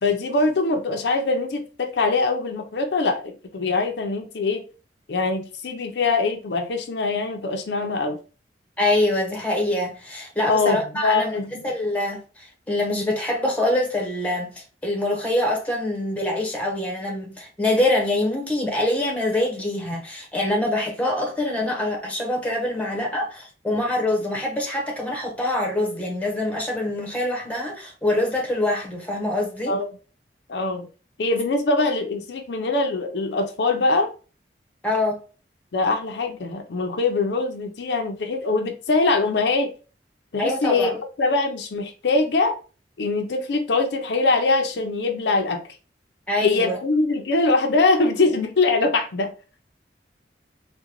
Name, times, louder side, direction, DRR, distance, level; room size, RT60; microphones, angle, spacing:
voice 1, 0.0-4.6 5.1-8.2 10.5-11.7 29.7-29.9 30.5-30.9 31.2-34.1 35.7-39.7 40.3-40.9 41.2-42.6 43.0-45.6 46.4-49.3, left 3 dB, 70° left, 0.5 m, -23 dB
voice 2, 8.8-29.8 34.8-35.2 40.4-41.0 46.3-46.8, left 1 dB, 10° left, 0.8 m, -25 dB
3.7 x 2.2 x 2.9 m
head